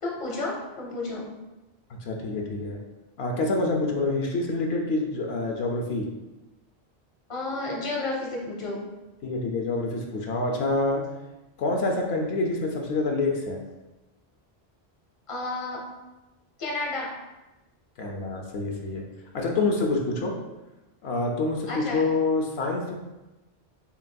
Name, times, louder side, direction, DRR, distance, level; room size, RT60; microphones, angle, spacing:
voice 1, 0.0-1.3 7.3-8.8 15.3-15.8 16.6-17.1 21.7-22.0, left 2 dB, 35° left, -2 dB, 0.8 m, -31 dB
voice 2, 1.9-2.8 3.2-6.1 9.2-11.0 11.6-13.6 18.0-19.0 19.3-20.3 21.0-22.9, left 2 dB, 80° left, 1 dB, 0.9 m, -27 dB
6.9 x 2.6 x 2.2 m, 1.0 s
omnidirectional pair, 1.1 m